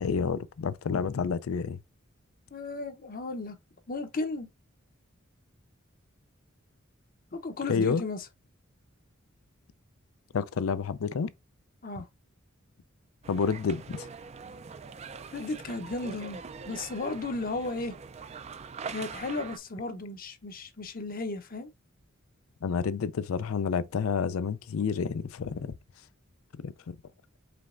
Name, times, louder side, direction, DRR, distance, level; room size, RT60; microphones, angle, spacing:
voice 1, 0.0-1.8 7.7-8.0 10.3-11.3 13.3-14.1 22.6-25.7 26.6-27.0, left 5 dB, 85° left, 0.4 m, -29 dB
voice 2, 2.5-3.6 3.9-4.5 7.3-8.3 11.8-12.1 15.3-18.0 18.9-21.7, left 3 dB, 45° left, 0.7 m, -35 dB
sound 1, 13.2-19.6, right 5 dB, 30° right, 0.4 m, -43 dB
5.1 x 3.3 x 2.5 m
head